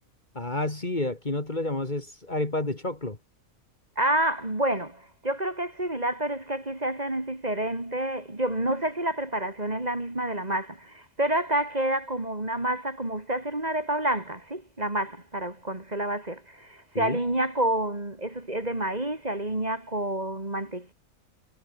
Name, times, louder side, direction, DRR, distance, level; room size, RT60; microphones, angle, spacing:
voice 1, 0.3-3.2 16.9-17.2, left 2 dB, 35° left, 2.9 m, -30 dB
voice 2, 4.0-20.9, right 1 dB, 30° right, 3.2 m, -29 dB
omnidirectional pair, 1.4 m